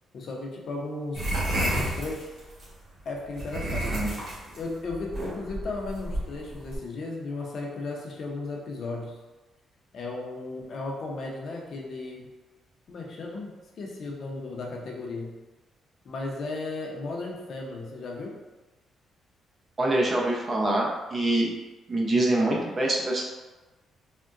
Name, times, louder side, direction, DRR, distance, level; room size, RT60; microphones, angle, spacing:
voice 1, 0.1-1.3 1.6-2.3 3.0-4.0 4.6-9.2 9.9-12.3 12.9-15.3 16.0-18.3, left 3 dB, 60° left, -1 dB, 0.6 m, -35 dB
sound 1, 1.1-2.7 3.3-6.8, right 1 dB, 55° right, 1.2 m, -30 dB
voice 2, 19.8-21.5 21.9-23.2, right 1 dB, 35° right, -2 dB, 0.6 m, -25 dB
3.6 x 2.1 x 2.4 m, 1.2 s
cardioid pair, 90°, 0 cm